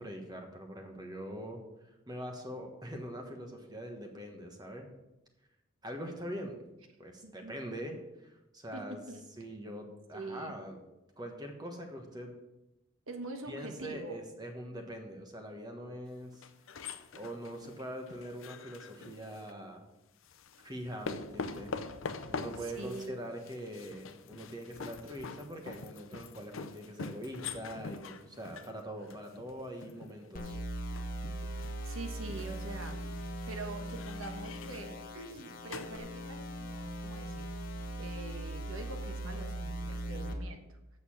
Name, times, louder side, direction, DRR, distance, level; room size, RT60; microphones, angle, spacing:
voice 1, 0.0-1.6 2.1-4.9 5.8-6.6 7.0-9.0 9.4-10.8 11.2-12.3 13.5-16.4 16.7-19.8 20.6-21.7 22.3-30.6, equal, 20° right, 3 dB, 1.3 m, -43 dB
voice 2, 7.2-7.5 8.7-9.2 10.1-10.6 13.1-14.2 22.6-23.2 31.4-33.0 33.5-40.8, right 2 dB, 75° right, 6 dB, 1.3 m, -44 dB
sound 1, 16.3-19.5 20.2-36.0, left 4 dB, 70° left, 0.6 m, -45 dB
sound 2, 30.3-40.3, right 1 dB, 40° left, 1.1 m, -40 dB
8.3 x 6.6 x 7.2 m, 0.98 s
head